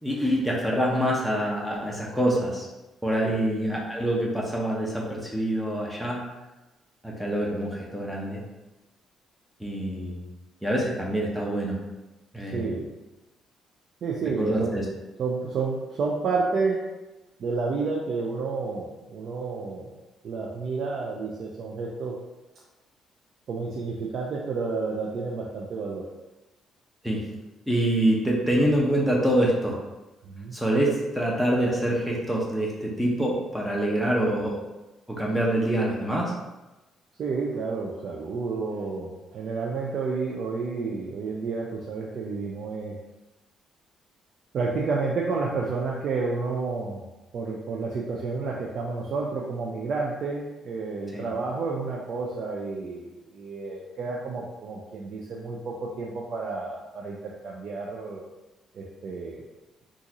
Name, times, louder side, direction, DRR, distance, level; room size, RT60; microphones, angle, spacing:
voice 1, 0.0-2.7 3.0-6.2 7.0-8.4 9.6-10.3 10.6-11.7 12.3-12.7 14.3-14.8 27.0-27.2 27.7-29.8 30.5-34.6 35.1-36.3 51.1-51.3, right 1 dB, 5° right, -3 dB, 0.8 m, -25 dB
voice 2, 12.5-12.9 14.0-14.8 15.2-16.9 17.4-19.9 20.2-22.2 23.5-26.1 30.2-30.6 37.2-43.0 44.5-47.0 47.3-58.3 58.7-59.4, right 4 dB, 60° right, -2 dB, 0.4 m, -30 dB
3.7 x 2.5 x 2.9 m, 1.1 s
supercardioid pair, 70°, 0 cm